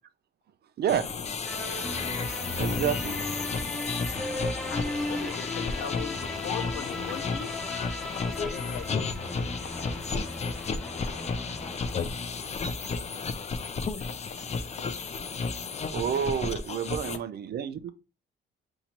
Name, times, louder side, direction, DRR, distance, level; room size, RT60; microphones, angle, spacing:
sound 1, 0.9-17.2, left 4 dB, 35° left, 0.5 m, -33 dB
sound 2, 1.4-12.8, left 1 dB, ahead, 0.7 m, -37 dB
voice 1, 1.8-2.2 2.8-2.9 4.7-7.5 8.3-9.3 9.6-9.7 11.9-12.1 16.9-17.0, left 8 dB, 90° left, 0.7 m, -40 dB
voice 2, 2.6-3.1 15.9-17.9, right 9 dB, 55° right, 0.5 m, -29 dB
5.8 x 2.7 x 2.9 m
cardioid pair, 90°, 20 cm